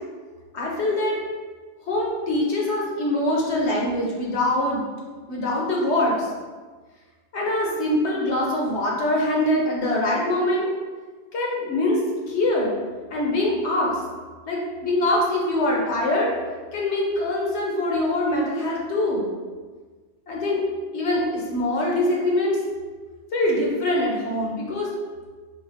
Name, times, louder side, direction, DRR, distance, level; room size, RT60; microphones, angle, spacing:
voice 1, 0.5-1.2 1.9-4.8 5.3-6.3 7.3-10.7 11.3-12.0 12.3-12.8 13.1-14.0 14.5-16.3 16.7-19.3 20.3-20.6 20.9-22.6 23.3-24.9, left 1 dB, 75° left, -3 dB, 1.1 m, -23 dB
4.3 x 2.2 x 3.4 m, 1.4 s
omnidirectional pair, 1.2 m